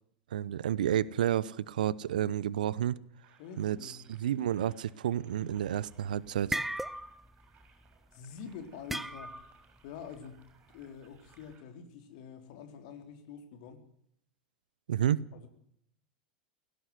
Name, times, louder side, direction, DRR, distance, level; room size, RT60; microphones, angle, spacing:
voice 1, 0.3-3.0 3.6-6.6 14.9-15.2, right 10 dB, 65° right, 21 dB, 0.8 m, -30 dB
sound 1, 3.2-11.6, right 6 dB, 35° right, 7.6 m, -66 dB
voice 2, 3.4-4.0 8.1-9.4 9.8-10.4 10.7-13.8 15.3-15.5, left 7 dB, 50° left, 7 dB, 3.7 m, -46 dB
sound 2, 5.6-5.9 6.3-7.3 7.6-7.9 8.9-9.6, right 1 dB, 5° right, 0.9 m, -36 dB
17.0 x 17.0 x 9.6 m, 0.70 s
figure-of-eight pair, 85°, 5 cm